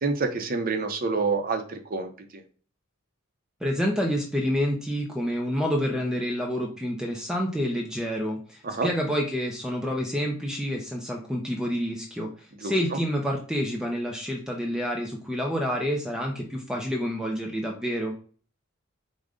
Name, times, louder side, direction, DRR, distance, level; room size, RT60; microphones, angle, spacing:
voice 1, 0.0-2.4 8.6-8.9 12.6-12.7, right 4 dB, 45° right, 6 dB, 0.6 m, -28 dB
voice 2, 3.6-18.1, equal, 5° right, 0 dB, 0.5 m, -28 dB
5.0 x 2.1 x 3.6 m, 0.42 s
head